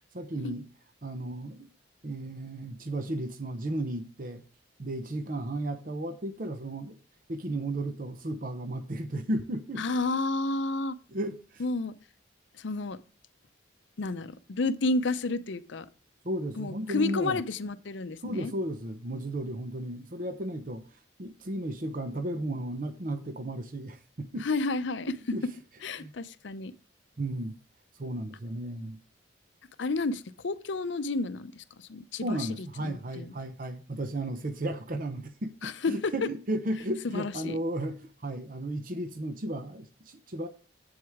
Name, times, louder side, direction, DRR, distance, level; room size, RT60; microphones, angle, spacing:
voice 1, 0.1-0.7 1.0-1.7 2.0-4.4 4.8-7.0 7.3-9.8 11.1-11.6 16.2-17.4 18.2-20.8 21.2-24.5 25.3-25.5 26.0-26.1 27.2-27.5 28.0-29.0 32.2-40.5, right 1 dB, 45° right, 0.7 m, -34 dB
voice 2, 9.8-11.0 11.6-11.9 12.6-13.0 14.0-15.9 16.6-18.5 24.4-25.4 25.8-26.7 29.8-33.3 35.6-36.1 37.0-37.6, left 3 dB, 65° left, 0.6 m, -31 dB
8.1 x 7.7 x 3.5 m
head